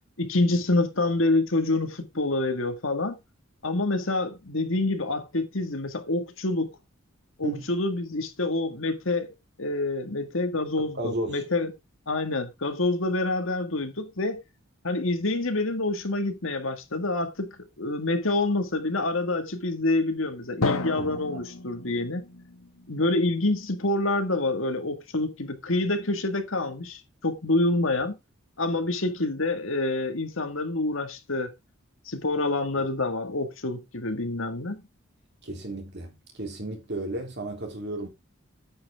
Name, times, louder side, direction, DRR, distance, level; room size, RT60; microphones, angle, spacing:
voice 1, 0.2-3.2 3.6-6.8 7.4-9.3 9.6-11.7 12.1-14.4 14.8-22.2 22.9-28.2 28.6-31.5 32.1-34.8, left 2 dB, 65° left, 1.7 m, -27 dB
voice 2, 10.8-11.4 21.0-21.4 32.8-32.9 35.4-38.1, right 2 dB, 50° right, 3.2 m, -34 dB
Drum, 20.6-24.3, left 3 dB, 80° left, 1.5 m, -33 dB
8.9 x 8.1 x 3.5 m
head